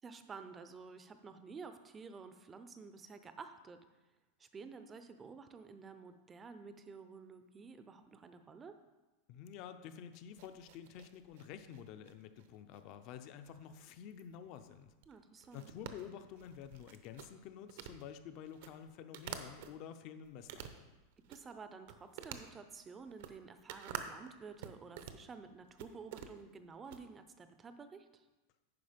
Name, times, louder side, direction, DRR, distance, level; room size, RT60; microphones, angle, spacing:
voice 1, 0.0-3.8 4.4-8.8 15.1-15.7 21.3-28.2, right 5 dB, 15° right, 9 dB, 0.5 m, -51 dB
voice 2, 9.3-14.9 15.5-20.9, left 8 dB, 40° left, 10 dB, 0.5 m, -50 dB
sound 1, 10.1-19.7 20.2-21.6 21.9-27.0, right 9 dB, 60° right, 0.7 m, -50 dB
9.6 x 5.3 x 5.1 m, 1.1 s
supercardioid pair, 165°, 0 cm